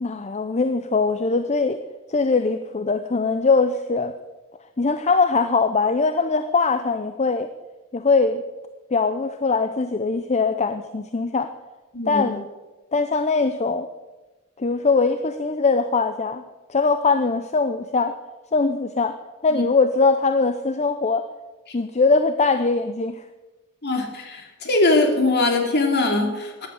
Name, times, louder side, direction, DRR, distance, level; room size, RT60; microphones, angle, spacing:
voice 1, 0.0-1.8 2.1-4.1 4.8-7.5 7.9-8.4 8.9-11.5 12.1-12.5 12.9-13.9 14.6-16.4 16.7-18.1 18.5-19.1 19.4-21.3 21.7-23.2, left 4 dB, 30° left, 10 dB, 0.6 m, -21 dB
voice 2, 11.9-12.2 19.5-19.6 21.7-21.8 23.8-26.7, left 2 dB, 50° left, 3 dB, 2.6 m, -21 dB
15.5 x 10.5 x 7.1 m, 1.1 s
head